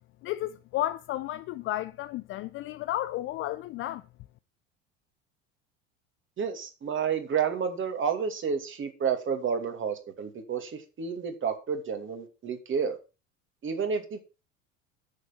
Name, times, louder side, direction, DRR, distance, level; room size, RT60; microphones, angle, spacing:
voice 1, 0.2-4.0, left 14 dB, 35° left, 0.5 m, -32 dB
voice 2, 6.4-13.0 13.6-14.2, right 6 dB, 30° right, 2.6 m, -30 dB
9.7 x 6.9 x 5.9 m
figure-of-eight pair, 75°, 39 cm